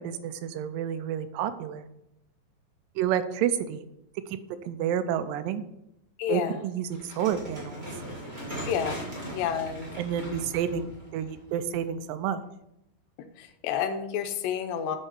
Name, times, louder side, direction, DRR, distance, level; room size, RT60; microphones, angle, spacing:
voice 1, 0.0-1.9 3.0-3.8 4.6-5.6 6.3-7.9 10.0-12.4, right 9 dB, 80° right, 12 dB, 2.1 m, -29 dB
voice 2, 6.2-6.6 8.7-9.9 13.4-15.0, left 8 dB, 80° left, 7 dB, 2.4 m, -30 dB
sound 1, 6.9-12.0, right 1 dB, 60° right, 0.5 m, -39 dB
7.9 x 4.7 x 4.4 m, 0.84 s
omnidirectional pair, 4.1 m